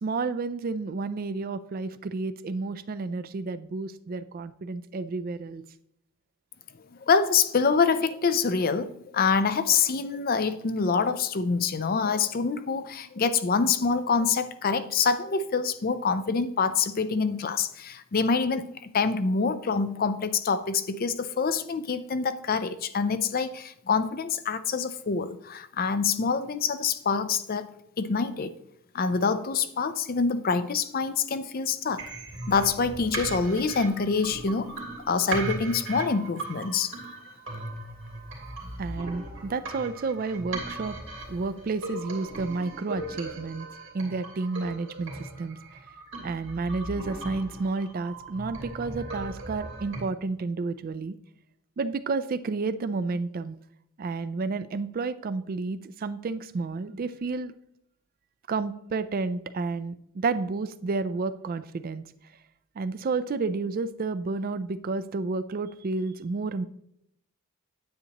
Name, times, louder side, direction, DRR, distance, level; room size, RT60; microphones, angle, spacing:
voice 1, 0.0-5.6 38.8-41.0 41.3-43.7 43.9-45.6 46.2-51.1 51.8-53.6 54.0-57.5 58.5-62.0 62.8-66.6, right 3 dB, 40° right, 13 dB, 0.3 m, -31 dB
voice 2, 7.0-27.7 28.0-28.5 28.9-32.0 32.5-34.7 35.1-36.9, left 5 dB, 40° left, 11 dB, 0.5 m, -26 dB
sound 1, 32.0-50.0, right 2 dB, 55° right, 3.0 m, -38 dB
9.6 x 8.3 x 2.9 m, 0.76 s
head